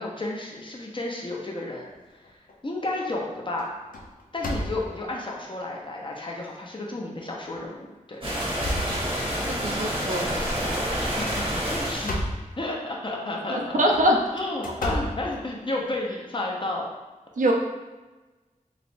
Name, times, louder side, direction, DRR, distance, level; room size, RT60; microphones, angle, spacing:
voice 1, 0.0-1.9 2.6-3.7 4.3-8.2 11.2-12.2 12.6-13.8 14.3-16.9, left 2 dB, 35° left, -2 dB, 0.6 m, -32 dB
sound 1, 2.0-2.5 3.0-3.2 3.6-5.2 5.9-6.0 6.4-6.5 7.4-7.7 8.1-9.6 11.1-12.6 13.7-15.9, equal, 85° left, 0.5 m, -34 dB
sound 2, 8.2-12.2, equal, 40° right, 0.8 m, -28 dB
voice 2, 9.5-10.8 13.5-14.2 17.4-17.5, equal, 65° right, 0 dB, 0.5 m, -24 dB
3.1 x 2.9 x 2.6 m, 1.2 s
wide cardioid pair, 70°, 14 cm